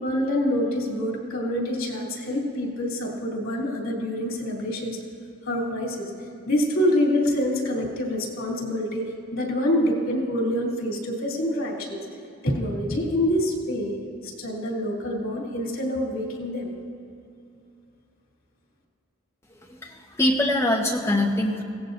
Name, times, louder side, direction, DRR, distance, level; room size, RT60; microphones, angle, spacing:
voice 1, 0.0-5.0 5.5-6.1 6.5-12.0 12.4-14.0 14.2-16.7, left 1 dB, 80° left, -2 dB, 2.9 m, -26 dB
voice 2, 19.7-21.6, left 1 dB, 15° left, -1 dB, 1.2 m, -23 dB
23.0 x 16.5 x 2.6 m, 2.5 s
head